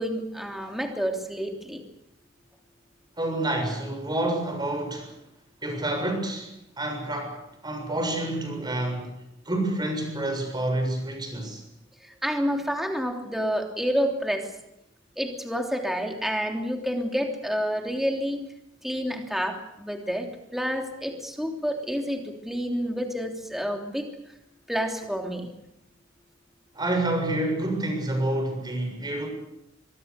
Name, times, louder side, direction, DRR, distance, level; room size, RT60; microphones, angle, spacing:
voice 1, 0.0-1.8 12.0-14.5 15.2-18.4 18.8-20.3 20.5-24.1 24.7-25.5, equal, ahead, 2 dB, 3.2 m, -29 dB
voice 2, 3.2-5.2 5.6-9.1 9.5-11.6 26.7-29.3, right 1 dB, 20° right, 4 dB, 7.1 m, -28 dB
24.0 x 23.5 x 6.8 m, 0.84 s
head